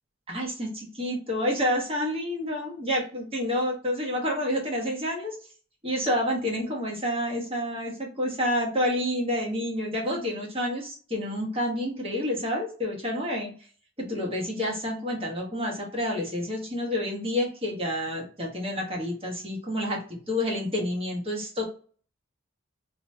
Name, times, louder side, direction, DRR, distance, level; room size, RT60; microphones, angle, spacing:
voice 1, 0.3-5.4 5.8-13.5 14.0-21.6, left 1 dB, 30° right, -1 dB, 1.3 m, -29 dB
3.0 x 2.8 x 3.2 m, 0.40 s
head